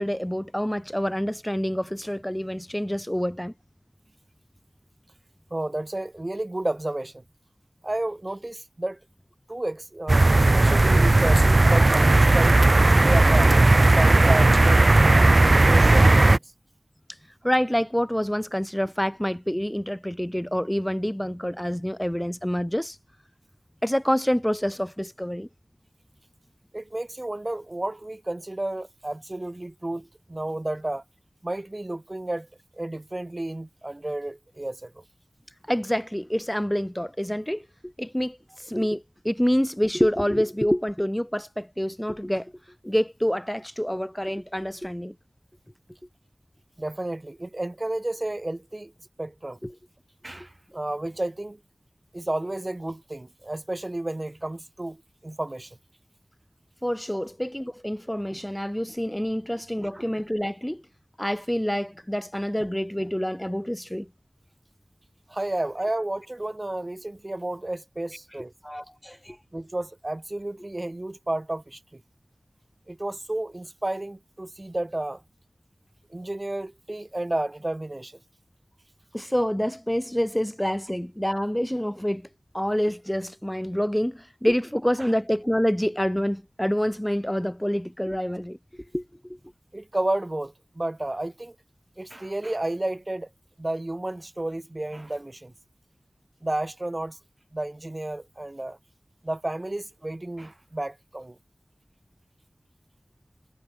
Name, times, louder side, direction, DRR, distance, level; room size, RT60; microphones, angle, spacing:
voice 1, 0.0-3.5 17.4-23.0 23.8-25.5 35.7-42.5 42.8-45.1 49.6-49.7 56.8-60.8 61.2-64.1 68.6-69.4 79.1-82.3 82.5-88.6 88.9-89.4, equal, 10° left, 1.9 m, -27 dB
voice 2, 5.5-7.2 7.8-9.0 9.5-13.7 14.0-14.8 15.6-16.4 26.7-31.0 31.4-32.5 32.7-34.9 46.8-48.9 49.2-49.6 50.2-51.6 52.1-55.8 59.9-60.0 65.3-68.5 69.5-72.0 72.9-75.2 76.1-78.2 85.0-85.1 89.7-91.6 92.0-93.3 93.6-95.5 96.4-97.2 97.5-98.8 99.2-101.4, right 1 dB, 40° right, 3.8 m, -31 dB
sound 1, 10.1-16.4, right 2 dB, 55° right, 1.1 m, -16 dB
wide cardioid pair, 40°, 0 cm